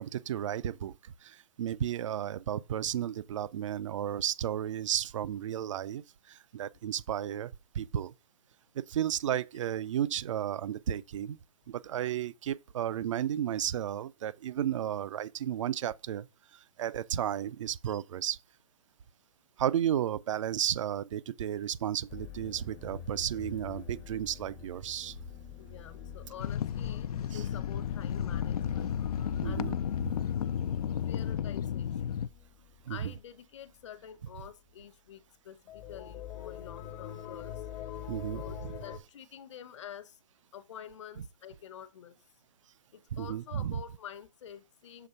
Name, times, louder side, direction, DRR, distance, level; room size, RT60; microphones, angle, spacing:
voice 1, 0.0-8.1 8.7-11.4 11.7-16.3 16.5-18.4 19.6-25.2 27.3-27.4 29.4-29.8 32.9-33.1 38.1-38.7 43.1-43.8, right 10 dB, 55° right, 0.5 m, -33 dB
sound 1, 22.1-33.4 33.7-33.9 34.1-34.3 35.7-39.0, left 8 dB, 15° left, 0.6 m, -45 dB
voice 2, 25.6-28.9 29.4-29.8 31.0-32.2 32.9-37.7 38.3-40.2 40.5-42.2 42.9-45.1, left 9 dB, 55° left, 0.9 m, -48 dB
sound 2, 26.4-32.3, left 9 dB, 85° left, 0.4 m, -33 dB
7.0 x 3.6 x 5.4 m
hypercardioid pair, 155°, 19 cm